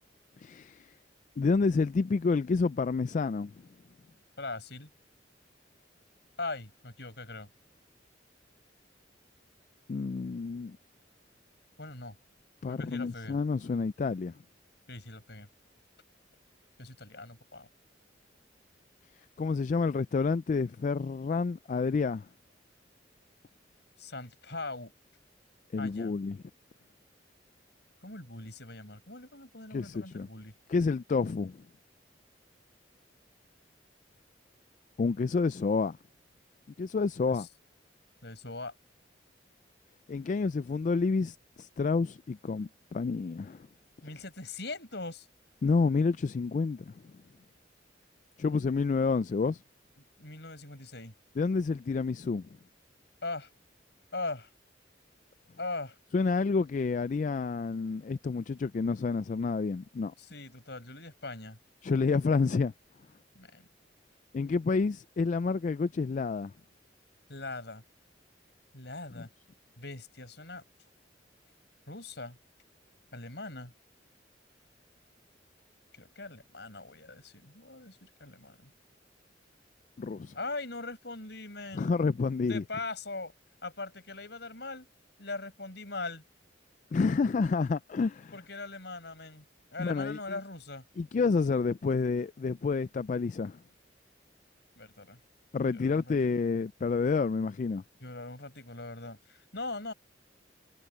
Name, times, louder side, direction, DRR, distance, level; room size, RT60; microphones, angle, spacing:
voice 1, 0.4-0.9 1.4-3.6 9.9-10.8 12.6-14.3 19.4-22.3 25.7-26.4 29.7-30.3 30.7-31.6 35.0-36.0 36.8-37.5 40.1-43.7 45.6-47.0 48.4-49.6 51.4-52.5 56.1-60.1 61.8-62.7 64.3-66.5 69.2-69.3 80.0-80.3 81.7-82.6 86.9-88.3 89.8-90.2 91.0-93.6 95.5-97.8, left 4 dB, 40° left, 0.3 m, -29 dB
voice 2, 4.4-4.9 6.4-7.5 11.8-12.2 12.7-13.4 14.9-15.5 16.8-17.7 24.0-24.9 25.8-26.1 28.0-30.5 37.3-37.5 38.2-38.7 44.0-45.3 50.2-51.1 53.2-53.5 54.1-54.5 55.6-56.0 60.2-61.6 63.3-63.7 67.3-67.8 68.7-69.3 69.8-70.6 71.9-72.4 73.1-73.7 76.0-78.7 80.3-81.9 82.4-83.3 83.6-84.9 85.2-86.2 88.3-90.8 94.8-95.2 95.7-96.2 98.0-99.9, left 3 dB, 65° left, 6.4 m, -41 dB
head